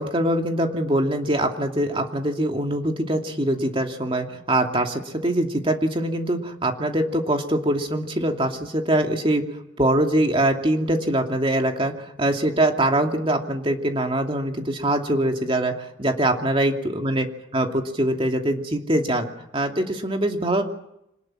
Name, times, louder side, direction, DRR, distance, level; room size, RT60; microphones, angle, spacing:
voice 1, 0.0-9.4 9.8-17.3 17.5-19.3 19.5-20.6, right 1 dB, 30° right, 3 dB, 2.6 m, -23 dB
26.0 x 19.5 x 6.2 m, 0.82 s
head